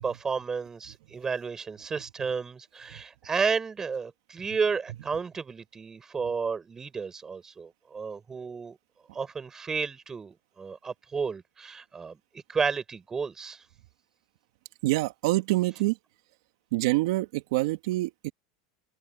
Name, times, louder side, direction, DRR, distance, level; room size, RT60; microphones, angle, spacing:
voice 1, 0.0-8.8 9.1-13.6, right 5 dB, 20° right, 7.9 m, -32 dB
voice 2, 14.8-16.0 16.7-18.3, right 19 dB, 75° right, 2.6 m, -26 dB
open air
supercardioid pair, 115°, 2 cm